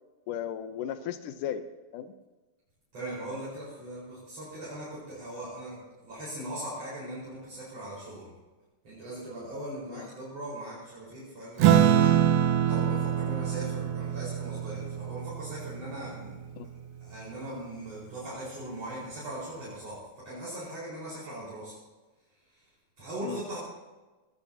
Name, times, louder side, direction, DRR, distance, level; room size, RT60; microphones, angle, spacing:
voice 1, 0.3-1.7 1.9-2.1 9.9-10.1 16.6-16.7 23.2-23.4, left 10 dB, 85° left, 9 dB, 2.4 m, -35 dB
voice 2, 2.9-8.3 8.8-16.4 17.0-21.7 22.5-22.6 23.0-23.6, right 1 dB, 50° right, -9 dB, 6.0 m, -40 dB
Acoustic guitar / Strum, 11.6-16.4, right 10 dB, 90° right, 2.4 m, -25 dB
20.0 x 18.0 x 2.9 m, 1.2 s
omnidirectional pair, 3.7 m